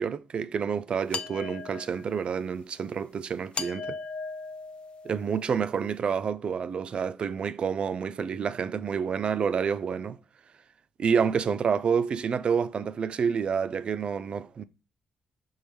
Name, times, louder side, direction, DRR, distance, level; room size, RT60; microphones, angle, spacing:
voice 1, 0.0-4.0 5.1-10.2 11.0-14.6, right 6 dB, 50° right, 0.3 m, -28 dB
sound 1, 1.1-2.2 3.5-5.4, left 5 dB, 50° left, 0.4 m, -37 dB
5.4 x 3.0 x 3.2 m
supercardioid pair, 55°, 2 cm